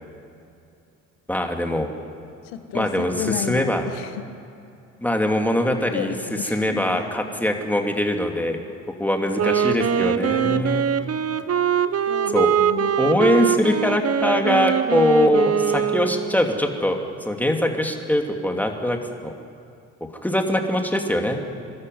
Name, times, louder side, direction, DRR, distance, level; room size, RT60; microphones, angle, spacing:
voice 1, 1.3-1.9 2.7-3.8 5.0-6.1 6.5-8.6 9.0-10.8 12.3-12.5 13.0-17.0 17.3-19.0 19.2-19.3 20.2-21.4, left 1 dB, 5° left, 3 dB, 2.8 m, -22 dB
voice 2, 2.4-4.2 5.9-7.1 10.3-10.7 12.1-13.6 14.4-14.5, left 10 dB, 70° left, 9 dB, 1.5 m, -33 dB
Wind instrument woodwind instrument, 9.3-16.4, right 8 dB, 35° right, 1.1 m, -22 dB
23.5 x 13.0 x 9.5 m, 2.6 s
hypercardioid pair, 55°, 40 cm